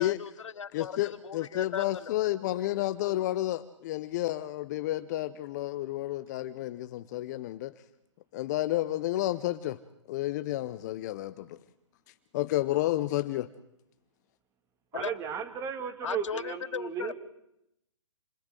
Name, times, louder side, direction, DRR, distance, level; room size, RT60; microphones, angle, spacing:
voice 1, 0.0-2.1 14.9-15.1 16.0-17.1, left 7 dB, 75° left, 1.0 m, -37 dB
voice 2, 0.7-7.7 8.3-9.8 10.1-11.6 12.3-13.5, left 15 dB, 35° left, 0.7 m, -31 dB
voice 3, 14.9-17.1, right 7 dB, 20° right, 2.2 m, -35 dB
29.0 x 28.5 x 3.9 m
hypercardioid pair, 140°, 16 cm